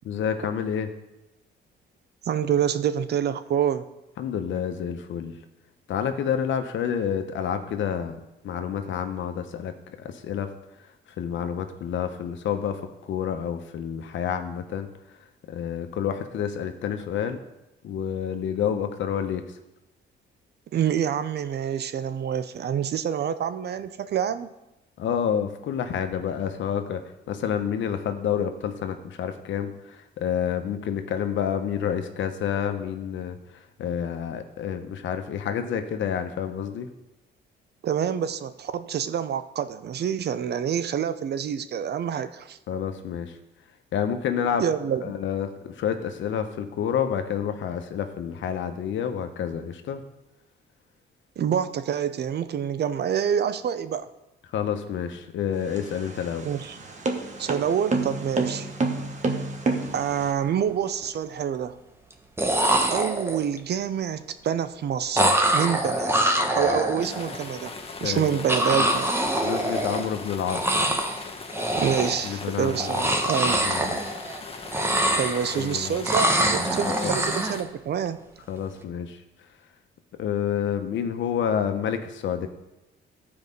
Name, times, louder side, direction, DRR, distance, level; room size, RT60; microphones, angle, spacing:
voice 1, 0.0-0.9 4.2-5.4 5.9-8.2 8.4-10.5 10.8-15.2 15.5-17.4 17.8-19.6 25.0-36.9 42.7-43.4 43.9-44.7 45.0-50.0 54.5-56.5 68.0-68.4 69.4-71.0 72.2-73.2 73.6-74.0 74.4-74.7 75.5-76.0 76.8-77.1 78.5-79.2 80.2-82.5, left 8 dB, 75° left, 7 dB, 0.9 m, -29 dB
voice 2, 2.3-3.9 20.7-24.5 37.8-42.6 44.6-45.1 51.4-54.1 56.4-56.7 57.4-58.7 59.9-61.8 62.9-65.3 65.5-66.2 66.5-69.1 71.7-73.8 75.1-78.2, right 8 dB, 55° right, 12 dB, 0.6 m, -27 dB
sound 1, 55.6-60.3, right 3 dB, 35° right, 1.3 m, -28 dB
sound 2, 60.1-60.2 60.5-61.1 62.1-62.2 62.4-63.6 65.2-67.4 68.5-70.2 70.5-71.2 71.5-72.3 72.7-74.4 74.7-75.7 76.1-77.6, right 1 dB, 10° right, 1.0 m, -24 dB
sound 3, 67.0-77.6, left 4 dB, 30° left, 1.1 m, -40 dB
12.0 x 4.8 x 5.4 m, 0.95 s
cardioid pair, 90°, 20 cm